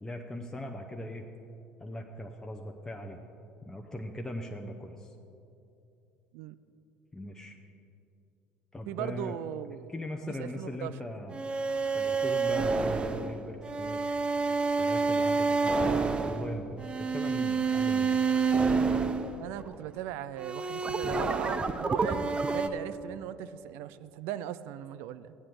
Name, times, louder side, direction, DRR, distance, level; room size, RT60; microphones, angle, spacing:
voice 1, 0.0-1.2 1.8-3.2 3.6-5.1 7.1-7.6 8.7-9.4 9.9-11.4 11.9-14.0 14.8-18.2, left 1 dB, 15° left, 2 dB, 0.9 m, -40 dB
voice 2, 8.9-9.9 10.2-11.0 19.4-25.4, right 12 dB, 65° right, 14 dB, 0.4 m, -39 dB
sound 1, 11.3-19.8 20.4-22.7, right 4 dB, 25° right, 0.7 m, -28 dB
15.5 x 9.8 x 3.8 m, 2.8 s
hypercardioid pair, 65°, 4 cm